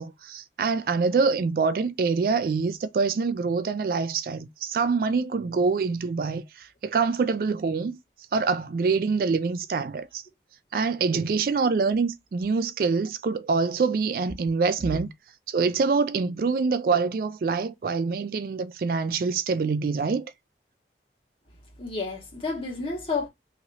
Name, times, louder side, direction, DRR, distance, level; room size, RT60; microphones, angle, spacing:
voice 1, 0.0-8.0 8.3-10.2 10.7-15.1 15.5-20.3, right 4 dB, 55° right, 0.3 m, -25 dB
voice 2, 21.8-23.3, left 3 dB, 30° left, 1.5 m, -30 dB
3.0 x 2.7 x 4.0 m
head